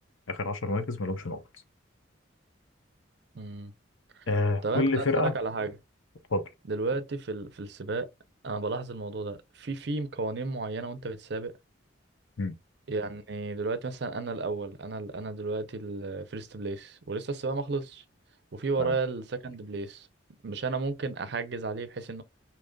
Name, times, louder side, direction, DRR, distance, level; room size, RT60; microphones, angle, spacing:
voice 1, 0.3-1.4 4.3-5.3 6.3-6.4 12.4-12.5 18.8-18.9, left 2 dB, 70° left, 0.8 m, -28 dB
voice 2, 3.3-3.7 4.1-4.3 4.6-5.8 6.7-8.1 8.4-11.6 12.9-18.0 18.5-20.1 20.4-22.2, right 3 dB, 55° right, 0.6 m, -33 dB
5.0 x 2.9 x 2.3 m
head